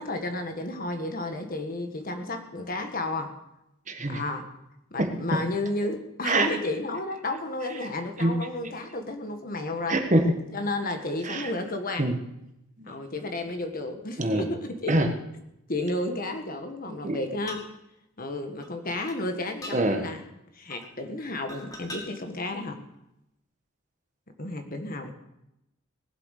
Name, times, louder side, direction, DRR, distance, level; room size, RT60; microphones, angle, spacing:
voice 1, 0.0-3.3 4.1-4.5 4.9-10.0 10.5-12.1 12.9-15.0 15.7-17.6 18.2-20.2 20.5-22.8 24.4-25.1, left 2 dB, 40° left, 6 dB, 1.5 m, -32 dB
voice 2, 3.9-4.2 5.0-5.4 6.2-6.5 8.2-8.4 9.9-10.3 11.2-11.5 12.0-12.1 12.8-12.9 14.2-14.5 14.9-15.1 17.0-17.2 19.7-20.0, right 1 dB, 35° right, 5 dB, 1.4 m, -24 dB
sound 1, 17.5-17.7 18.6-18.7 19.1-19.2 19.6-19.8 20.7-20.9 21.5-22.0 22.9-23.0, left 1 dB, 15° left, 2.1 m, -40 dB
18.5 x 7.9 x 6.6 m, 0.85 s
head